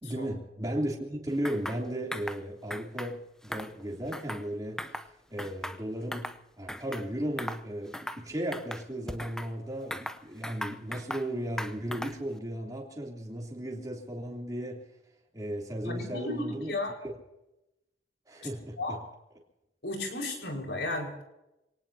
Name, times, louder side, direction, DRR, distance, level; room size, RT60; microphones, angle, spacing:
voice 1, 0.0-4.8 5.3-6.3 6.6-14.8 15.3-16.7 18.3-19.0, right 1 dB, 20° right, -1 dB, 3.2 m, -35 dB
sound 1, 1.4-1.8 2.1-2.4 2.7-3.1 3.4-4.5 4.8-5.1 5.4-6.4 6.7-7.1 7.4-7.6 7.9-8.2 8.5-9.5 9.9-11.3 11.6-12.3, equal, 5° left, 0.7 m, -38 dB
voice 2, 15.9-16.9 18.8-19.0 19.8-21.2, left 2 dB, 75° left, 1 dB, 5.2 m, -34 dB
27.0 x 18.5 x 2.8 m, 0.93 s
head